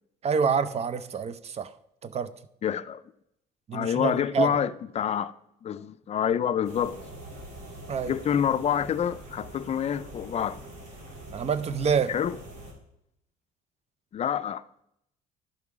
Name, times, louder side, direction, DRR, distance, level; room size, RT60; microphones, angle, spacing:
voice 1, 0.2-1.7 2.0-2.3 3.7-4.6 7.9-8.1 11.3-12.2, right 6 dB, 40° right, 0.6 m, -27 dB
voice 2, 2.6-3.0 3.7-5.3 5.6-7.0 8.1-10.6 12.1-12.4 14.1-14.8, left 9 dB, 40° left, 0.5 m, -27 dB
sound 1, 6.6-12.7, right 1 dB, 75° right, 2.9 m, -44 dB
11.5 x 5.5 x 4.8 m
cardioid pair, 110°, 17 cm